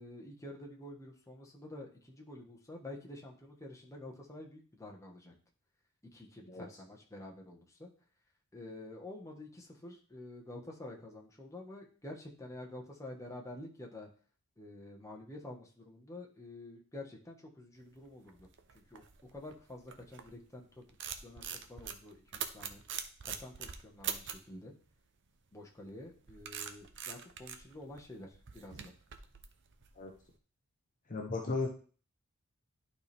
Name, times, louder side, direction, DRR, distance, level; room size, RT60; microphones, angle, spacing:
voice 1, 0.0-5.3 6.1-7.9 8.5-14.1 14.6-18.5 18.7-19.0 19.3-20.8 21.2-22.8 23.2-24.7 25.5-28.9, left 1 dB, 15° left, 0 dB, 1.4 m, -49 dB
sound 1, 18.1-20.4 20.8-24.5 25.8-30.2, right 8 dB, 55° right, 0.7 m, -43 dB
voice 2, 31.1-31.7, left 3 dB, 35° left, 1 dB, 0.9 m, -35 dB
11.5 x 4.3 x 3.4 m, 0.41 s
head